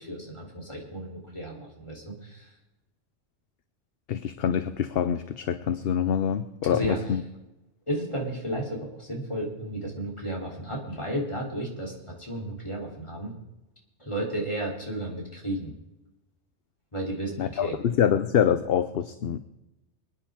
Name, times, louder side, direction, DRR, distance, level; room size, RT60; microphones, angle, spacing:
voice 1, 0.0-2.5 6.7-7.0 7.9-13.3 14.0-15.7 16.9-17.8, right 1 dB, 25° left, -2 dB, 3.6 m, -33 dB
voice 2, 4.1-7.2 17.4-19.4, left 8 dB, 60° left, 11 dB, 0.9 m, -25 dB
25.0 x 10.0 x 3.7 m, 0.97 s
omnidirectional pair, 1.2 m